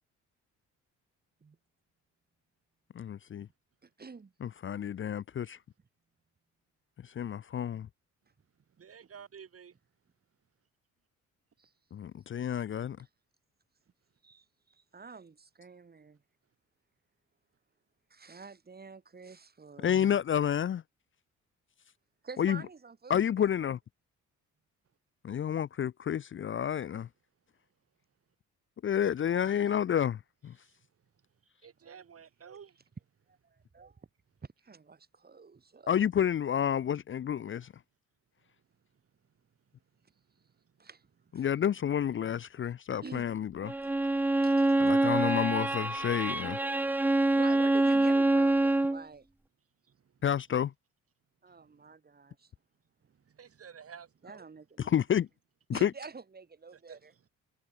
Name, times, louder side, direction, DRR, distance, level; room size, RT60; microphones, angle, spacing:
voice 1, 3.0-3.5 4.4-5.6 7.0-7.9 11.9-13.0 19.8-20.8 22.4-22.6 23.1-23.8 25.2-27.1 28.8-30.2 30.4-30.5 35.9-37.7 41.3-43.7 44.8-46.6 50.2-50.7 54.8-55.3 55.7-55.9, left 9 dB, 40° left, 0.6 m, -30 dB
voice 2, 3.8-4.3 11.6-11.7 13.0-13.1 14.2-16.2 18.1-20.0 22.2-23.7 29.2-29.8 31.8-32.0 33.3-34.1 34.6-36.0 40.8-41.1 41.3-41.5 43.0-43.4 43.7-44.9 47.3-49.3 51.4-52.5 54.2-54.9 55.7-57.1, right 4 dB, 30° right, 6.1 m, -48 dB
voice 3, 8.8-9.8 30.6-30.8 31.6-32.8 49.9-50.0 53.1-54.5 56.9-57.0, right 7 dB, 50° right, 7.2 m, -51 dB
Bowed string instrument, 43.7-49.0, right 2 dB, 5° right, 0.3 m, -26 dB
cardioid pair, 90°, 30 cm